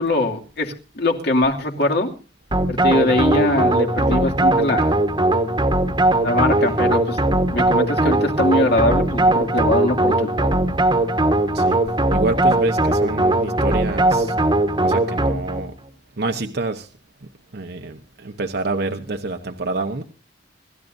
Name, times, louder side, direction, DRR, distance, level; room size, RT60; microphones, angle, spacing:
voice 1, 0.0-2.1 2.7-4.9 6.2-7.2 7.5-10.5, left 1 dB, 60° left, 2 dB, 2.5 m, -21 dB
sound 1, 2.5-15.7, right 1 dB, 25° right, 1.4 m, -19 dB
voice 2, 12.1-14.3 14.8-15.7 16.2-16.9 17.5-20.0, right 3 dB, 60° right, 5 dB, 1.0 m, -27 dB
27.0 x 14.0 x 2.6 m, 0.34 s
head